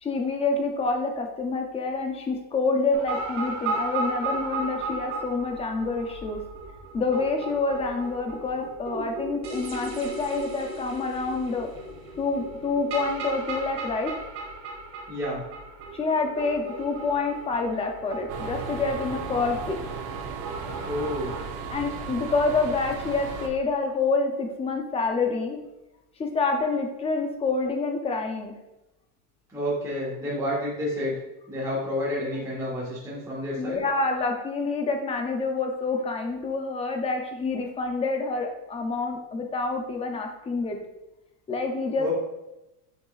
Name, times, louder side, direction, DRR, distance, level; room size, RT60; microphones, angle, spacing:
voice 1, 0.0-6.4 6.9-11.7 12.2-14.1 15.9-19.8 21.7-25.6 26.2-28.5 33.6-40.8 41.5-42.1, left 3 dB, 15° left, 3 dB, 0.5 m, -27 dB
sound 1, 2.9-21.4, right 3 dB, 35° right, 1.6 m, -35 dB
voice 2, 15.1-15.4 20.8-21.4 29.5-31.1 31.5-33.8 42.0-42.1, left 1 dB, 5° right, -7 dB, 1.6 m, -29 dB
sound 2, 18.3-23.5, right 6 dB, 75° right, 1.3 m, -36 dB
6.9 x 6.4 x 2.4 m, 0.96 s
supercardioid pair, 155°, 48 cm